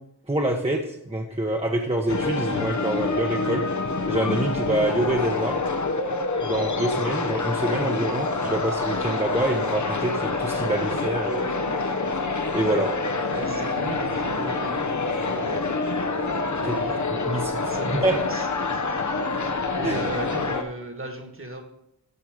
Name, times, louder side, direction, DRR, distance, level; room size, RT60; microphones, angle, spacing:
voice 1, 0.3-3.6 4.1-5.6 6.4-11.5 12.5-12.9 16.6-16.7 17.3-17.5 17.9-18.2 19.8-20.0, right 1 dB, 15° right, 0 dB, 1.1 m, -26 dB
sound 1, 2.1-20.6, left 3 dB, 40° left, 1.1 m, -27 dB
voice 2, 13.3-15.7 16.5-17.2 17.5-18.5 19.7-21.6, right 1 dB, 30° right, 5 dB, 1.9 m, -37 dB
14.0 x 4.6 x 5.1 m, 0.83 s
cardioid pair, 55°, 44 cm